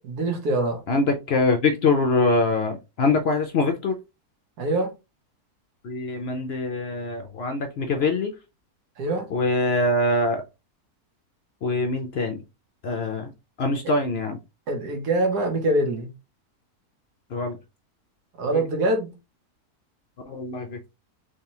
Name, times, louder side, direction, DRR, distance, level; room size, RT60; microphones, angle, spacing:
voice 1, 0.0-0.8 4.6-4.9 9.0-9.3 14.7-16.1 18.4-19.1, right 1 dB, 80° right, 1.6 m, -24 dB
voice 2, 0.9-4.0 5.8-8.3 9.3-10.4 11.6-12.4 12.8-13.3 13.6-14.4 17.3-17.6 18.5-18.6 20.3-20.8, left 2 dB, 70° left, 0.6 m, -24 dB
3.5 x 3.2 x 2.9 m
omnidirectional pair, 1.7 m